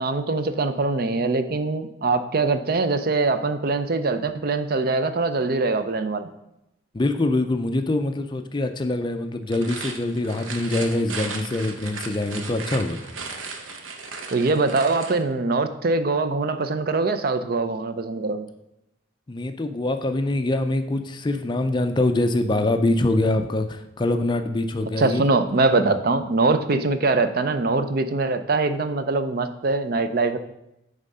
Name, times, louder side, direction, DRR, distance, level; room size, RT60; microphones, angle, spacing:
voice 1, 0.0-6.3 14.3-18.5 25.0-30.4, right 3 dB, 50° right, 10 dB, 0.5 m, -23 dB
voice 2, 6.9-13.0 19.3-25.2 25.9-26.0, left 2 dB, 25° left, 7 dB, 0.4 m, -24 dB
sound 1, 9.4-15.2, right 4 dB, 85° right, 0.9 m, -36 dB
9.0 x 3.6 x 5.4 m, 0.85 s
head